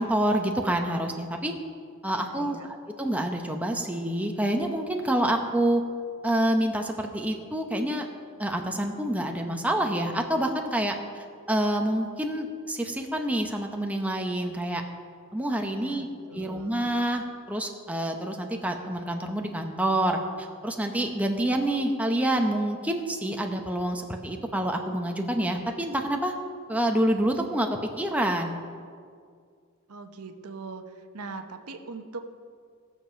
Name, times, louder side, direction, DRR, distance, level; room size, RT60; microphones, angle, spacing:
voice 1, 0.0-1.5 2.0-5.8 6.2-8.1 8.4-14.8 15.3-16.1 16.3-26.3 26.7-27.7 28.0-28.6, right 1 dB, 5° right, 3 dB, 0.9 m, -27 dB
voice 2, 2.1-2.7 15.6-16.8 29.9-32.2, right 4 dB, 85° right, 6 dB, 0.9 m, -41 dB
18.5 x 7.1 x 5.7 m, 2.1 s
head